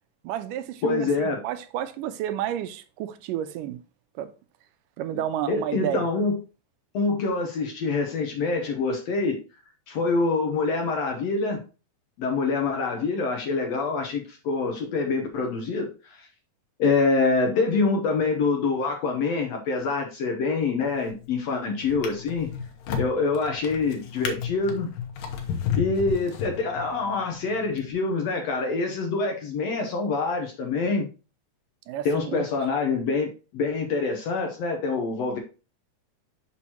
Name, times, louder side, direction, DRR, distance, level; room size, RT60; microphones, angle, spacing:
voice 1, 0.2-3.8 4.2-4.3 5.0-6.1 31.9-32.5, right 11 dB, 85° right, 2.2 m, -31 dB
voice 2, 0.8-1.4 5.5-6.4 6.9-9.4 9.9-11.6 12.2-16.2 16.8-22.5 23.0-24.9 25.8-31.1 32.1-35.4, left 4 dB, 70° left, 1.7 m, -25 dB
Drawer open or close, 20.8-21.3 21.8-27.0 27.7-27.9, left 8 dB, 90° left, 2.7 m, -32 dB
6.2 x 5.9 x 2.9 m
omnidirectional pair, 3.8 m